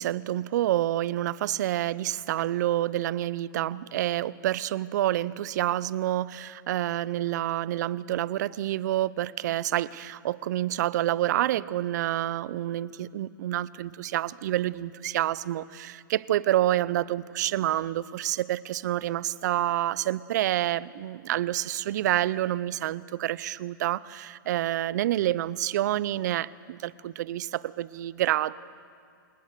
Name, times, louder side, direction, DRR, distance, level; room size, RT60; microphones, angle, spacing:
voice 1, 0.0-28.5, right 13 dB, 50° right, 20 dB, 0.6 m, -28 dB
27.0 x 19.0 x 6.7 m, 2.3 s
hypercardioid pair, 150°, 12 cm